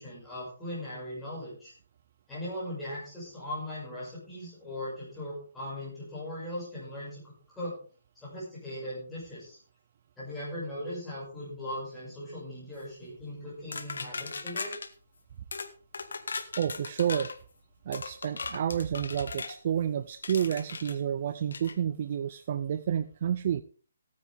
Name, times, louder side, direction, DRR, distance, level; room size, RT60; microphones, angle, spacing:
voice 1, 0.0-1.7 2.3-7.8 8.2-9.6 10.2-14.7, left 1 dB, 5° left, -8 dB, 5.8 m, -39 dB
sound 1, 13.7-14.9 15.5-15.7 15.9-17.4 17.9-19.6 20.2-21.0 21.5-21.8, left 4 dB, 80° left, 1.4 m, -38 dB
voice 2, 16.3-17.3 17.9-23.6, right 9 dB, 30° right, 12 dB, 0.4 m, -30 dB
16.0 x 9.5 x 3.5 m, 0.40 s
hypercardioid pair, 175°, 0 cm